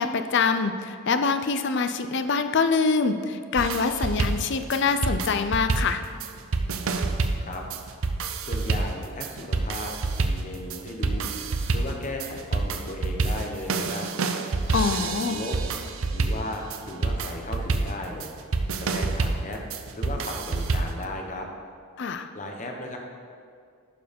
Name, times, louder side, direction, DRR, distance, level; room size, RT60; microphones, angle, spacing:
voice 1, 0.0-6.0 14.7-15.4 22.0-22.3, left 4 dB, 50° left, 9 dB, 0.5 m, -25 dB
sound 1, 3.6-21.0, right 3 dB, 65° right, 0.6 m, -28 dB
voice 2, 8.4-14.1 14.9-15.6 16.1-18.3 18.8-19.6 19.9-21.5 22.3-23.0, left 1 dB, 35° left, 2 dB, 1.0 m, -36 dB
11.5 x 4.7 x 5.3 m, 2.3 s
head